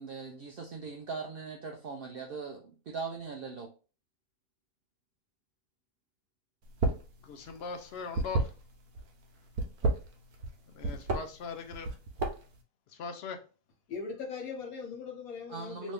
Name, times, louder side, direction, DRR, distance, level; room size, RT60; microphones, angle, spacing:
voice 1, 0.0-3.7 15.5-15.9, right 4 dB, 70° right, 0.5 m, -40 dB
sound 1, 6.7-7.1 7.4-9.0 9.5-10.5 10.8-11.2 11.7-12.6, right 2 dB, 90° right, 1.2 m, -30 dB
voice 2, 7.2-8.5 10.7-11.9 12.9-13.4, left 5 dB, 60° left, 0.7 m, -40 dB
voice 3, 13.9-15.9, left 5 dB, 85° left, 1.4 m, -40 dB
3.0 x 2.6 x 3.3 m
omnidirectional pair, 1.5 m